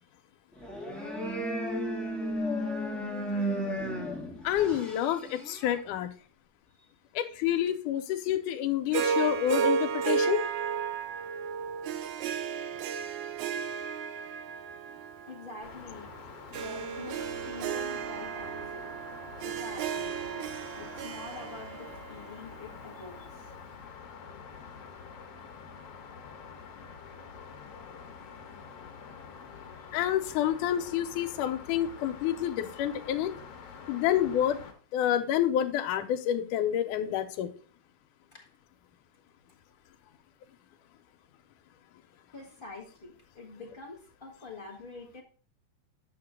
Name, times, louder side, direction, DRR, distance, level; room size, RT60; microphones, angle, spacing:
sound 1, 0.6-5.8, equal, ahead, 0.4 m, -34 dB
voice 1, 4.4-6.1 7.2-10.4 29.9-33.3 33.9-34.6 34.9-37.5, left 11 dB, 90° left, 7 dB, 2.3 m, -28 dB
Harp, 8.9-23.3, right 6 dB, 75° right, 2.1 m, -34 dB
voice 2, 15.2-16.1 16.5-18.9 19.4-20.4 20.7-23.5 29.8-29.9 38.3-38.5 42.3-45.2, left 3 dB, 35° left, -3 dB, 0.8 m, -46 dB
sound 2, 15.6-34.7, left 6 dB, 60° left, 2.0 m, -47 dB
8.6 x 6.0 x 3.7 m, 0.40 s
omnidirectional pair, 3.6 m